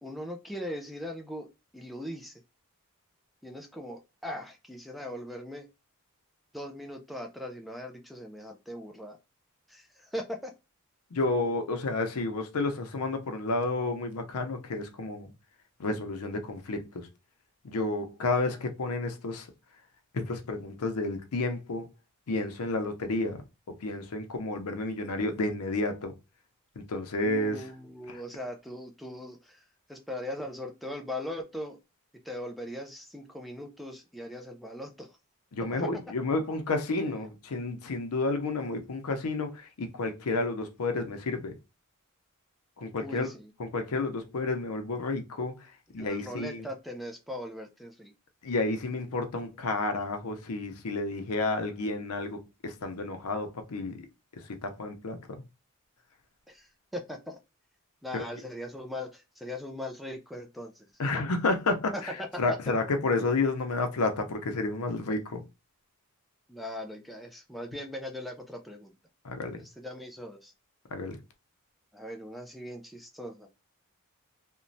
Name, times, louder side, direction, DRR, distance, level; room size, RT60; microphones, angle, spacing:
voice 1, 0.0-2.4 3.4-5.7 6.5-9.2 9.7-10.5 27.2-31.8 32.2-35.1 35.7-35.9 43.0-43.5 46.0-48.1 56.5-56.7 56.9-57.4 58.0-60.9 61.9-62.6 66.5-68.9 69.6-70.5 71.9-73.5, left 1 dB, ahead, 0.3 m, -40 dB
voice 2, 11.1-15.3 15.8-17.1 17.6-19.5 20.1-21.9 22.3-23.4 23.8-26.1 26.8-27.7 28.1-28.2 35.5-41.5 42.8-43.3 43.6-45.6 45.9-46.7 48.4-54.0 54.6-55.2 58.1-58.3 61.0-62.1 62.4-65.4 69.2-69.6 70.9-71.2, left 2 dB, 85° left, 0.6 m, -31 dB
3.0 x 2.1 x 2.6 m
head